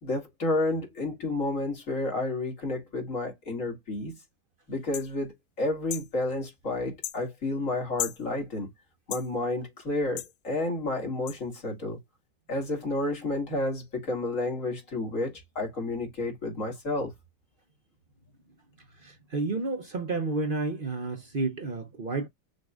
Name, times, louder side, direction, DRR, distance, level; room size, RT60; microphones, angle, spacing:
voice 1, 0.0-4.2 4.7-8.7 9.1-12.0 12.5-17.1, left 2 dB, 50° left, 2.5 m, -31 dB
sound 1, 4.9-5.1 5.9-6.1 7.0-7.2 8.0-8.2 9.1-9.3 10.2-10.3 11.3-11.4, left 14 dB, 85° left, 1.2 m, -34 dB
voice 2, 18.9-22.3, right 3 dB, 45° right, 0.8 m, -31 dB
6.4 x 2.6 x 2.4 m
omnidirectional pair, 1.8 m